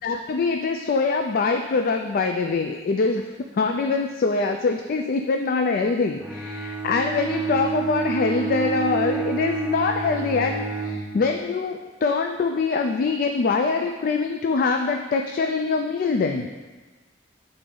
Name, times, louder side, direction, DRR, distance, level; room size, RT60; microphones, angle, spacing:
voice 1, 0.0-3.3 3.5-16.5, left 4 dB, 50° left, 4 dB, 0.3 m, -24 dB
Bowed string instrument, 6.2-11.1, right 6 dB, 10° right, 0.7 m, -29 dB
8.4 x 4.0 x 3.8 m, 1.3 s
head